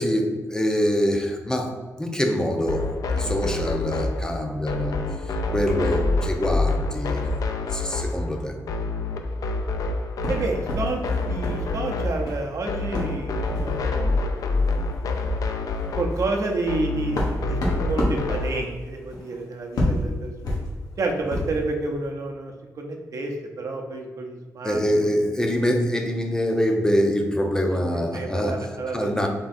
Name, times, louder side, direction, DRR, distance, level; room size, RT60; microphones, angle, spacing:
voice 1, 0.0-2.9 3.2-5.0 5.5-7.3 7.7-8.6 24.6-28.6 28.9-29.3, equal, 10° left, 3 dB, 0.5 m, -24 dB
sound 1, 2.7-18.6, left 3 dB, 70° left, 0.4 m, -27 dB
sound 2, 10.2-11.6 11.9-12.5 12.9-13.2 13.5-13.8 14.6-14.7 15.1-15.3 15.7-21.6, left 1 dB, 85° left, 1.1 m, -29 dB
voice 2, 10.3-11.0 11.3-14.7 16.0-20.6 21.0-25.1 27.9-29.3, right 3 dB, 60° right, 2 dB, 0.7 m, -30 dB
3.7 x 3.4 x 4.1 m, 1.3 s
wide cardioid pair, 125°, 6 cm